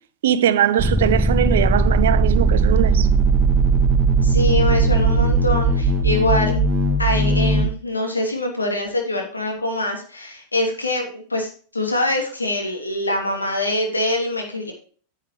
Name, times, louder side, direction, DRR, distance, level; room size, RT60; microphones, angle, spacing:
voice 1, 0.2-3.1, right 10 dB, 60° right, 0.7 m, -20 dB
sound 1, 0.8-7.6, right 3 dB, 20° right, 1.3 m, -18 dB
voice 2, 4.2-6.6 7.0-14.7, left 1 dB, 80° left, 2.7 m, -24 dB
10.0 x 8.0 x 3.3 m
figure-of-eight pair, 90°, 0 cm